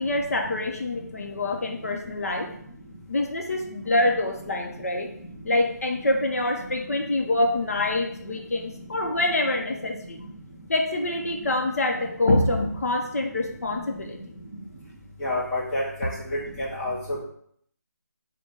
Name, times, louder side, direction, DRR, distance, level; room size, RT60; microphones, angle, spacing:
voice 1, 0.0-2.5 3.1-5.1 5.4-10.2 10.7-14.2, left 2 dB, 55° left, 2 dB, 0.7 m, -25 dB
voice 2, 15.2-16.9, left 1 dB, 5° left, -10 dB, 0.7 m, -29 dB
5.0 x 2.2 x 3.8 m, 0.66 s
figure-of-eight pair, 170°, 10 cm